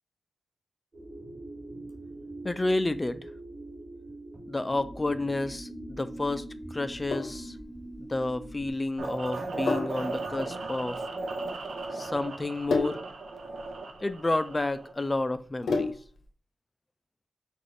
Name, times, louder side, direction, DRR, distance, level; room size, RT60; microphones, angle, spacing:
sound 1, 0.9-8.7, right 1 dB, 30° right, 2.4 m, -43 dB
voice 1, 2.4-3.3 4.5-6.5 6.7-7.6 8.0-11.0 11.9-13.0 14.0-15.9, left 2 dB, 20° left, 0.3 m, -30 dB
Sink (filling or washing), 6.8-16.3, left 4 dB, 80° left, 0.8 m, -35 dB
sound 2, 9.0-14.9, right 3 dB, 70° right, 0.7 m, -36 dB
6.1 x 2.5 x 3.2 m
wide cardioid pair, 100°, 0 cm